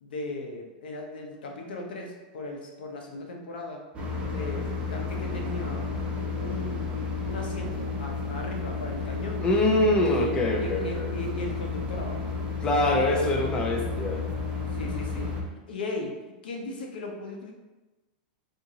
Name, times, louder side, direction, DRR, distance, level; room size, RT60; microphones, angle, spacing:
voice 1, 0.0-3.9 4.3-5.9 6.4-9.4 10.1-12.3 12.7-13.2 14.7-15.4 15.7-16.2 16.4-17.5, left 2 dB, 90° left, 2 dB, 0.7 m, -37 dB
sound 1, 3.9-15.4, left 4 dB, 20° right, 0.7 m, -32 dB
voice 2, 9.4-11.1 12.6-14.2, left 1 dB, 15° left, 1 dB, 0.5 m, -24 dB
3.8 x 2.5 x 2.8 m, 1.1 s
supercardioid pair, 140°, 5 cm